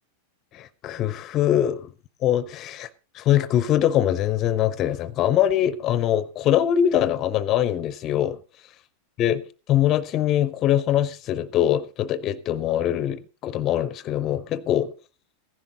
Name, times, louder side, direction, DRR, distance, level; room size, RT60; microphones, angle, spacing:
voice 1, 0.5-1.9 2.2-2.9 3.1-8.4 9.2-14.9, left 11 dB, 35° left, 0.5 m, -23 dB
15.5 x 10.5 x 3.7 m
figure-of-eight pair, 90°, 0 cm